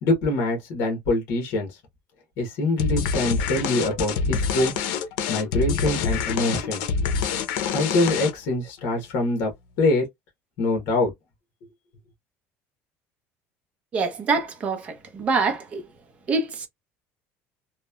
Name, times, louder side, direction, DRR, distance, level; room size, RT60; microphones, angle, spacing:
voice 1, 0.0-1.7 2.4-4.7 5.3-6.9 7.7-9.5 9.8-10.1 10.6-11.1, left 2 dB, 60° left, 1.0 m, -24 dB
sound 1, 2.8-8.6, left 6 dB, 90° left, 0.6 m, -26 dB
voice 2, 13.9-15.8 16.3-16.7, right 4 dB, 25° right, 0.6 m, -25 dB
2.9 x 2.1 x 2.2 m
cardioid pair, 175°, 5 cm